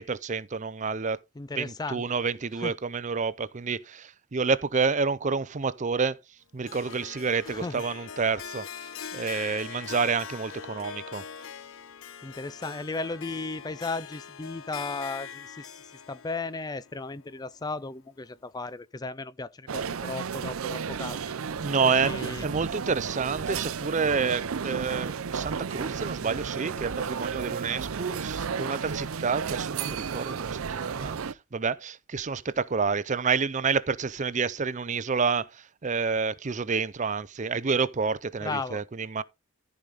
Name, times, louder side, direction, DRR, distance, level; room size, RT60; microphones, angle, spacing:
voice 1, 0.0-1.2 1.5-6.2 6.5-11.2 21.6-39.2, right 5 dB, 35° right, 0.5 m, -29 dB
voice 2, 1.4-2.0 2.6-2.7 7.4-7.8 12.2-15.8 16.1-21.3 21.8-22.5 38.4-38.8, left 3 dB, 20° left, 0.4 m, -35 dB
Harp, 6.7-17.9, left 7 dB, 70° left, 0.7 m, -42 dB
sound 1, 19.7-31.3, right 6 dB, 80° right, 0.6 m, -33 dB
14.0 x 4.9 x 4.0 m
head